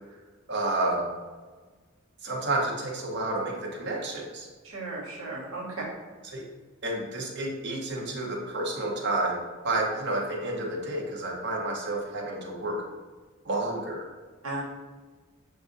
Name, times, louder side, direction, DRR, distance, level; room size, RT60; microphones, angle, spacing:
voice 1, 0.5-1.1 2.2-4.5 6.2-6.4 6.8-12.8 13.4-14.0, right 2 dB, 55° right, -1 dB, 0.8 m, -30 dB
voice 2, 4.6-5.8 14.4-14.6, right 2 dB, 80° right, -3 dB, 1.0 m, -35 dB
6.9 x 2.4 x 2.5 m, 1.4 s
head